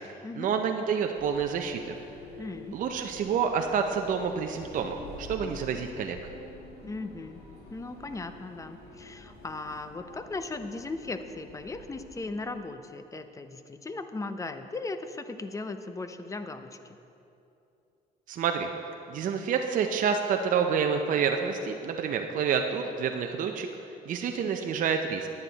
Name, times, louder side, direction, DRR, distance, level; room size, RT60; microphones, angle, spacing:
voice 1, 0.4-1.9 2.7-6.2 18.3-18.7 19.1-23.7 24.1-25.3, right 6 dB, 50° right, 4 dB, 0.6 m, -28 dB
sound 1, 1.2-12.5, left 2 dB, 65° left, 2.1 m, -48 dB
voice 2, 2.4-2.8 6.8-7.4 7.7-17.0, left 3 dB, 20° left, 9 dB, 0.5 m, -37 dB
10.0 x 9.7 x 4.0 m, 2.7 s
cardioid pair, 110°, 17 cm